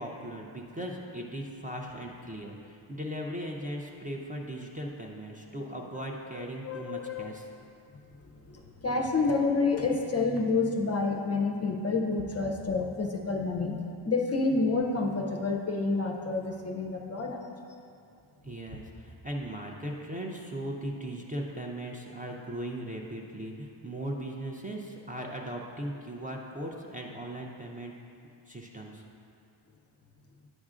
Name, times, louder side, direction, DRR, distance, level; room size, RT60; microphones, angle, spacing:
voice 1, 0.0-7.5 18.4-27.9 28.5-29.0, right 1 dB, 15° right, -1 dB, 0.4 m, -38 dB
voice 2, 6.6-7.3 8.5-13.8 14.1-17.5, left 3 dB, 30° left, 2 dB, 0.5 m, -29 dB
9.7 x 6.2 x 2.4 m, 2.6 s
cardioid pair, 100°, 49 cm